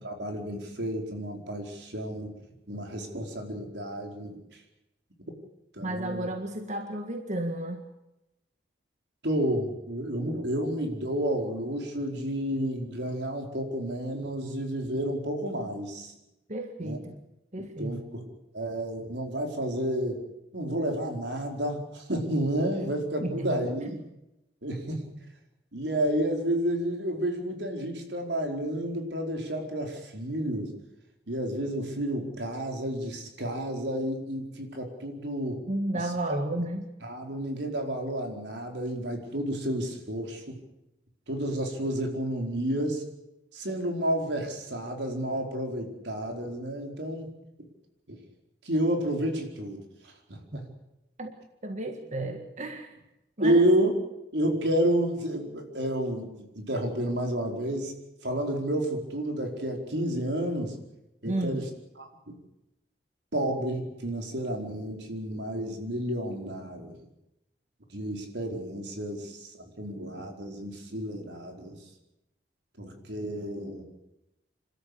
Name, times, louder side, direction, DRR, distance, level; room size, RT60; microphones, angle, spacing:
voice 1, 0.0-2.3 2.7-4.4 5.7-6.3 9.2-16.1 16.8-17.0 17.8-18.3 18.5-20.2 20.5-24.1 24.6-25.1 25.7-30.7 31.3-35.6 35.9-36.4 37.0-40.6 41.3-43.0 43.5-47.3 47.6-47.7 48.1-48.2 48.6-50.7 53.4-53.9 54.3-57.9 58.2-60.7 61.2-61.7 62.0-62.4 63.3-67.0 67.9-71.8 72.8-73.8, right 1 dB, 80° right, 3 dB, 4.7 m, -30 dB
voice 2, 5.8-7.8 16.5-17.2 17.5-18.0 23.2-23.5 35.7-36.8 50.5-50.6 51.2-51.3 51.6-52.9 53.4-53.6 61.2-61.6, right 1 dB, 45° right, 5 dB, 1.9 m, -32 dB
27.5 x 13.0 x 8.5 m, 0.90 s
head